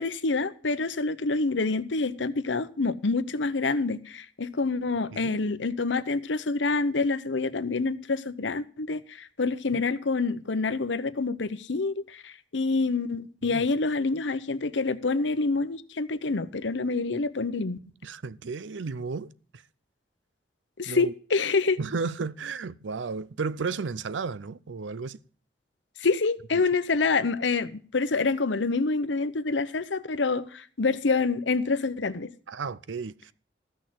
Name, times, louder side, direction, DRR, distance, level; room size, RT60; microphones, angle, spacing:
voice 1, 0.0-17.8 20.8-21.8 26.0-32.3, left 3 dB, 85° left, 0.8 m, -27 dB
voice 2, 18.0-19.6 20.9-21.1 21.8-25.2 26.5-26.6 32.5-33.3, right 4 dB, 90° right, 0.6 m, -33 dB
14.0 x 6.5 x 7.5 m
head